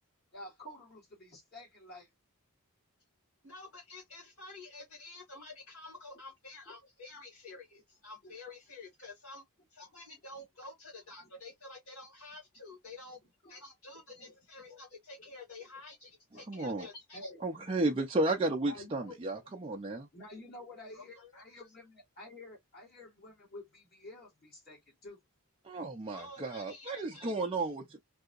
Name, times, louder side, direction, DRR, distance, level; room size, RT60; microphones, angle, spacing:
voice 1, 0.3-2.1 8.2-8.3 13.4-13.6 17.1-17.7 18.6-19.2 20.1-25.2, left 1 dB, 45° left, 2.1 m, -50 dB
voice 2, 3.4-9.4 9.7-13.2 13.5-17.3 20.9-21.4 26.1-27.5, left 3 dB, 75° left, 2.2 m, -50 dB
voice 3, 16.5-16.9 17.4-20.1 25.7-27.8, right 2 dB, 25° right, 0.4 m, -33 dB
3.7 x 2.7 x 2.4 m
head